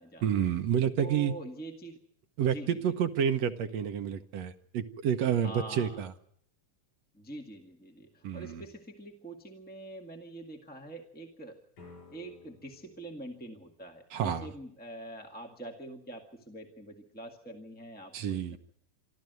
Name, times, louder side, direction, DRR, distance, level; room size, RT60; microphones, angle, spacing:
voice 1, 0.2-1.3 2.4-6.1 8.2-8.6 14.1-14.5 18.1-18.6, right 8 dB, 65° right, 7 dB, 2.0 m, -29 dB
voice 2, 1.0-2.0 2.4-2.8 5.4-6.0 7.1-11.6 12.1-18.6, right 1 dB, 5° left, 3 dB, 1.1 m, -45 dB
sound 1, 11.7-14.6, left 4 dB, 80° left, 9.0 m, -56 dB
27.0 x 13.0 x 9.3 m, 0.67 s
omnidirectional pair, 3.6 m